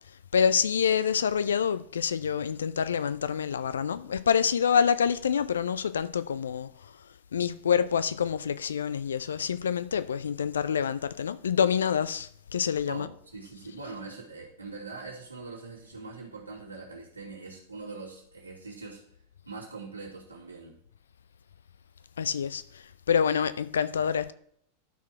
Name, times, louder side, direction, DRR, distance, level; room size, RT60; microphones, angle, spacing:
voice 1, 0.3-6.7 7.3-13.1 22.2-24.3, left 7 dB, 65° left, 0.5 m, -27 dB
voice 2, 12.9-19.0 19.5-20.7, right 4 dB, 80° right, 2.9 m, -42 dB
12.0 x 4.7 x 4.7 m
figure-of-eight pair, 90°, 0 cm